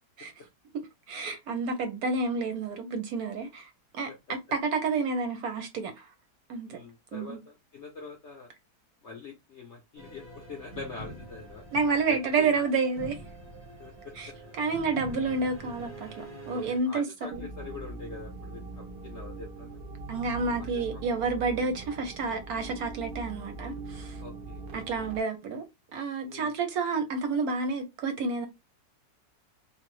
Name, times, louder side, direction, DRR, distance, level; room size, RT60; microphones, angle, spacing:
voice 1, 1.1-6.1 6.5-6.8 7.1-7.4 11.7-13.2 14.2-14.3 14.6-17.1 17.3-17.5 20.1-24.2 24.7-25.6 25.9-28.5, right 4 dB, 70° right, 0.9 m, -30 dB
voice 2, 4.0-4.4 6.7-8.5 9.0-11.6 12.1-12.6 13.8-14.1 16.5-19.8 20.6-21.0 24.2-24.6 24.9-25.1 26.3-26.5, left 4 dB, 65° left, 0.7 m, -44 dB
sound 1, 10.0-16.8, right 2 dB, 20° right, 0.3 m, -45 dB
sound 2, 17.3-25.2, right 3 dB, 90° right, 0.5 m, -41 dB
3.2 x 2.0 x 3.0 m
omnidirectional pair, 1.9 m